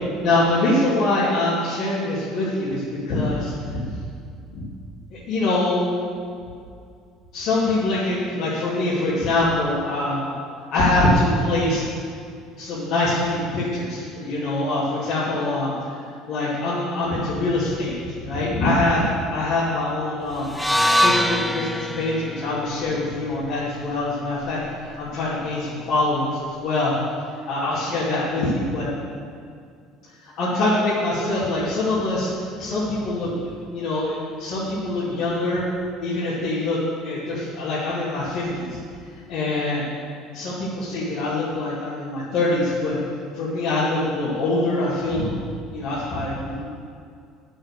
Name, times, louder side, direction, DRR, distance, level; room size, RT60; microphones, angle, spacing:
voice 1, 0.2-3.8 4.5-4.7 5.1-5.8 7.3-10.3 10.7-11.8 12.6-15.7 16.3-20.5 21.0-26.9 27.5-28.9 30.2-32.3 32.6-35.6 36.0-38.8 39.3-39.9 40.3-42.9 43.3-45.4 45.7-46.6, left 2 dB, 60° left, -9 dB, 2.5 m, -24 dB
sound 1, 20.5-24.7, equal, ahead, 0.4 m, -24 dB
9.9 x 6.5 x 6.7 m, 2.3 s
cardioid pair, 135°, 0 cm